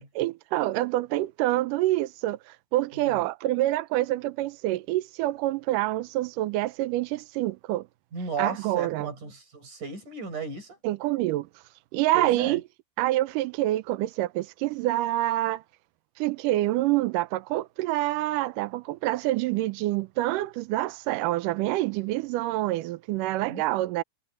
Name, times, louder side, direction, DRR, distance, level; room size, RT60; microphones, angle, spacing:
voice 1, 0.2-7.9 8.4-9.1 10.8-11.5 11.9-12.6 13.0-15.6 16.2-24.0, right 16 dB, 80° right, 2.0 m, -27 dB
voice 2, 8.1-10.8 12.1-12.6 23.4-23.6, right 5 dB, 55° right, 7.9 m, -35 dB
omnidirectional pair, 4.4 m